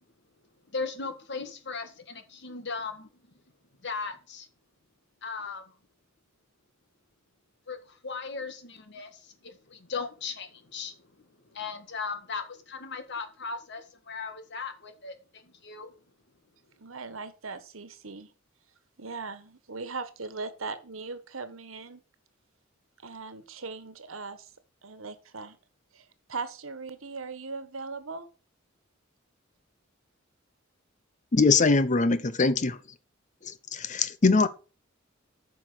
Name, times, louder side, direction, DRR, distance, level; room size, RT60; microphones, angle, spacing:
voice 1, 0.7-3.1 3.8-4.5 5.2-5.8 7.7-15.9, left 4 dB, 60° left, 1.6 m, -37 dB
voice 2, 16.8-18.3 19.0-22.0 23.0-24.5 24.8-25.6 25.9-28.3, right 4 dB, 80° right, 1.4 m, -39 dB
voice 3, 31.3-32.8 33.7-34.5, left 3 dB, 35° left, 0.7 m, -22 dB
8.9 x 6.0 x 6.1 m
head